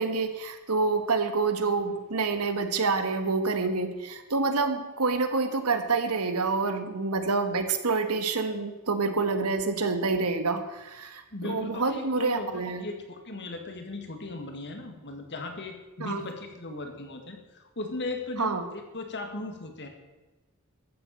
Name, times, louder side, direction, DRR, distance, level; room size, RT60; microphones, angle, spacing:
voice 1, 0.0-12.8 16.0-16.3 18.4-18.6, right 4 dB, 90° right, 8 dB, 1.6 m, -27 dB
voice 2, 11.3-19.9, left 2 dB, 55° left, 5 dB, 2.2 m, -37 dB
14.0 x 8.3 x 7.8 m, 1.1 s
head